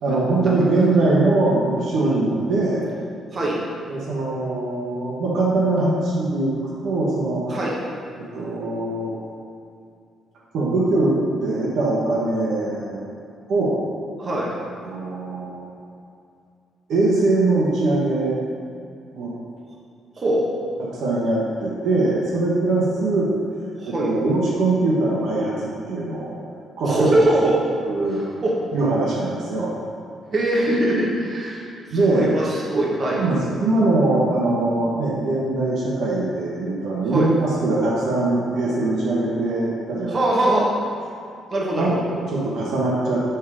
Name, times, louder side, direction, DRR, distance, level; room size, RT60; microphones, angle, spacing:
voice 1, 0.0-2.9 3.9-6.5 6.8-7.5 8.2-9.2 10.5-11.2 11.4-13.0 13.5-13.8 14.8-15.7 16.9-18.4 19.1-19.3 20.8-23.3 23.9-26.4 26.8-27.1 27.9-28.3 28.7-29.8 31.9-32.3 33.2-40.2 41.8-41.9 42.1-43.2, right 2 dB, 75° right, -5 dB, 1.2 m, -22 dB
voice 2, 14.2-14.6 20.2-20.5 23.8-24.1 26.8-27.6 28.4-28.6 30.3-33.2 37.1-37.3 40.1-40.7 41.5-42.0, right 1 dB, 40° right, -4 dB, 1.5 m, -22 dB
7.2 x 3.7 x 4.9 m, 2.5 s
cardioid pair, 90°, 0 cm